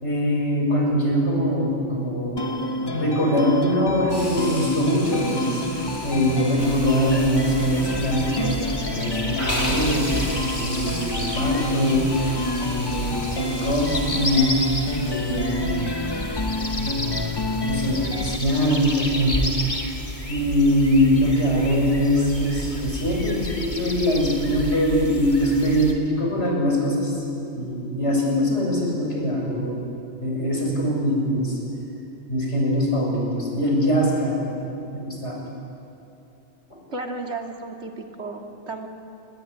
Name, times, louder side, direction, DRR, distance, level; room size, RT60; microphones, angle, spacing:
voice 1, 0.0-5.6 6.0-12.1 12.6-14.6 15.0-15.9 16.8-19.7 20.3-29.8 30.2-31.6 32.3-35.4, equal, 90° left, -1 dB, 6.9 m, -23 dB
sound 1, 2.4-18.4, left 2 dB, 25° left, 0.9 m, -29 dB
Hiss, 4.1-15.4, equal, 70° left, 7.0 m, -36 dB
sound 2, 6.6-25.9, left 1 dB, 45° left, 2.5 m, -31 dB
voice 2, 36.9-38.9, right 3 dB, 80° right, 3 dB, 2.6 m, -33 dB
29.0 x 20.0 x 9.8 m, 2.8 s
omnidirectional pair, 1.1 m